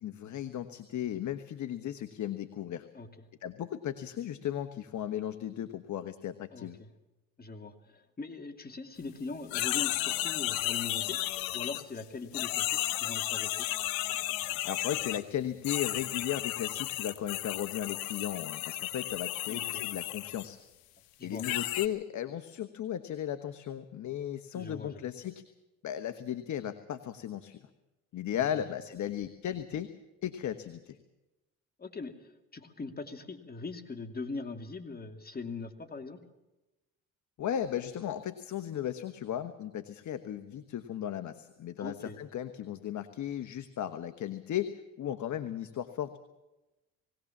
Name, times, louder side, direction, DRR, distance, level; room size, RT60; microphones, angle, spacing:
voice 1, 0.0-2.9 3.4-6.8 14.6-20.6 21.2-25.4 25.8-27.7 28.1-29.9 30.2-31.0 37.4-46.2, left 10 dB, 55° left, 10 dB, 1.3 m, -36 dB
voice 2, 6.5-6.9 7.4-11.2 11.5-13.7 19.5-19.8 21.2-21.4 24.5-25.0 28.6-28.7 31.8-36.2 41.8-42.2, left 3 dB, 25° left, 7 dB, 2.7 m, -41 dB
sound 1, 9.5-12.0 12.3-15.2 15.6-20.5 21.4-21.9, left 15 dB, 85° left, 1.1 m, -33 dB
21.0 x 17.5 x 7.3 m, 1.0 s
supercardioid pair, 85°, 34 cm